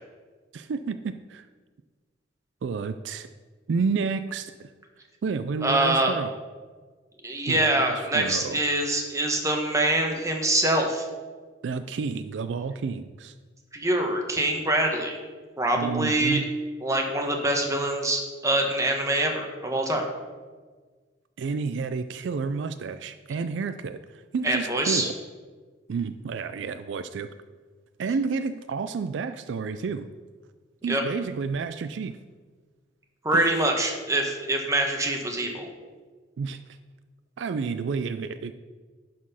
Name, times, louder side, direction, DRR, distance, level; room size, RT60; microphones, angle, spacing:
voice 1, 0.5-1.4 2.6-3.3 3.7-4.7 5.2-6.3 7.5-8.6 11.6-13.3 15.8-16.5 21.4-25.2 25.9-27.3 28.0-30.1 30.8-32.2 33.3-33.5 36.4-36.6 37.4-38.5, right 5 dB, 70° right, 11 dB, 0.4 m, -30 dB
voice 2, 5.6-6.1 7.2-11.1 13.7-15.2 15.6-16.4 16.8-20.0 24.4-25.1 30.9-31.0 33.2-35.7, right 1 dB, 15° right, 2 dB, 1.1 m, -24 dB
11.0 x 4.3 x 5.6 m, 1.4 s
head